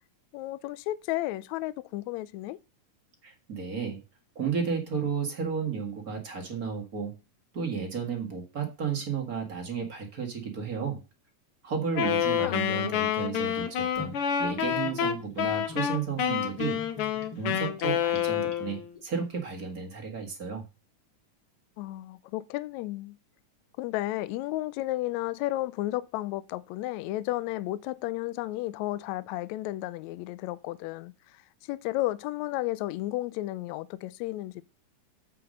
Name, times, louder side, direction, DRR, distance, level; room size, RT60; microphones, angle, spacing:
voice 1, 0.3-2.6 12.4-12.7 21.8-23.2 23.8-31.4 31.7-34.6, left 17 dB, 80° left, 1.8 m, -33 dB
voice 2, 3.2-4.0 4.4-7.1 7.5-11.0 11.6-14.1 14.4-16.8 17.4-20.6, right 6 dB, 35° right, 1.9 m, -33 dB
Wind instrument woodwind instrument, 11.9-18.9, left 9 dB, 60° left, 1.7 m, -28 dB
Gurgling / Bathtub (filling or washing), 13.9-19.0, left 2 dB, 15° left, 2.0 m, -47 dB
7.9 x 5.9 x 6.4 m
omnidirectional pair, 3.3 m